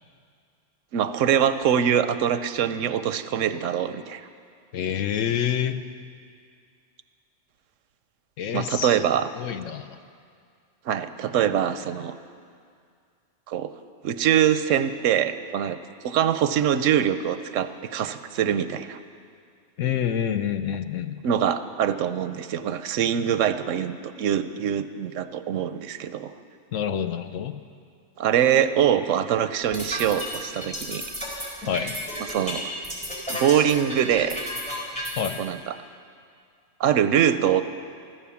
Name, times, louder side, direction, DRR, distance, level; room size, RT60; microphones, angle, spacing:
voice 1, 0.9-4.2 8.5-9.3 10.9-12.1 13.5-13.7 14.0-15.8 16.0-19.0 21.2-26.3 28.2-31.0 32.2-32.7 33.3-34.4 35.4-35.8 36.8-37.6, right 9 dB, 85° right, 11 dB, 1.0 m, -23 dB
voice 2, 4.7-5.8 8.4-9.0 9.4-10.0 19.8-21.1 26.7-27.6 31.7-31.9 35.2-35.4, left 9 dB, 85° left, 9 dB, 1.1 m, -27 dB
sound 1, 29.6-35.3, equal, 5° left, 4.2 m, -32 dB
14.5 x 14.0 x 7.1 m, 2.2 s
omnidirectional pair, 1.3 m